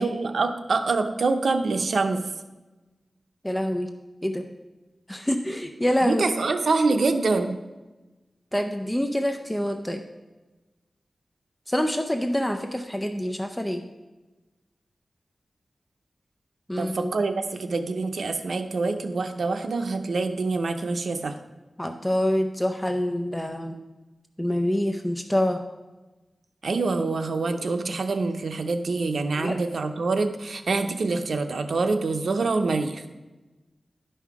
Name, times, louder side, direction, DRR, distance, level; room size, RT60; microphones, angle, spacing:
voice 1, 0.0-2.2 6.0-7.5 16.8-21.3 26.6-33.0, right 3 dB, 85° right, 7 dB, 0.7 m, -25 dB
voice 2, 3.4-3.9 4.2-4.4 5.1-6.2 8.5-10.0 11.7-13.8 16.7-17.1 21.8-23.8 24.4-25.6 29.4-29.6, equal, 10° left, 5 dB, 0.5 m, -26 dB
11.0 x 5.6 x 4.8 m, 1.1 s
wide cardioid pair, 110°, 0 cm